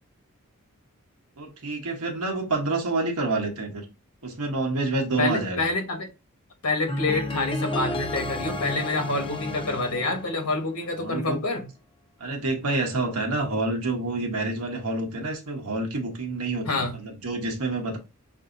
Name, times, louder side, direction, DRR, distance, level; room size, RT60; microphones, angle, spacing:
voice 1, 1.4-3.8 4.2-5.7 11.0-11.4 12.2-18.0, right 2 dB, 85° right, 1.0 m, -28 dB
voice 2, 5.2-6.1 6.6-11.6 16.6-16.9, left 3 dB, 85° left, 1.2 m, -27 dB
sound 1, 6.9-11.0, left 1 dB, 25° left, 0.6 m, -32 dB
5.1 x 2.7 x 2.5 m
head